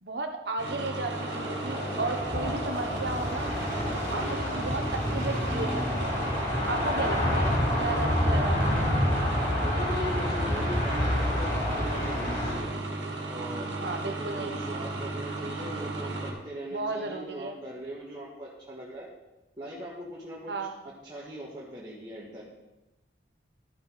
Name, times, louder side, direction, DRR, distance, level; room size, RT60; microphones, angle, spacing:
voice 1, 0.0-3.5 4.1-6.2 6.7-7.5 7.8-8.9 13.8-14.6 16.7-17.6 20.5-20.7, right 3 dB, 70° right, 5 dB, 1.2 m, -34 dB
sound 1, 0.6-16.3, right 2 dB, 90° right, 2.1 m, -35 dB
sound 2, 1.0-12.5, left 1 dB, 40° left, 4.1 m, -28 dB
voice 2, 7.0-7.4 9.6-12.8 13.3-19.1 19.6-20.6 20.9-22.4, equal, 25° right, -7 dB, 1.9 m, -40 dB
13.0 x 6.3 x 5.2 m, 1.0 s
head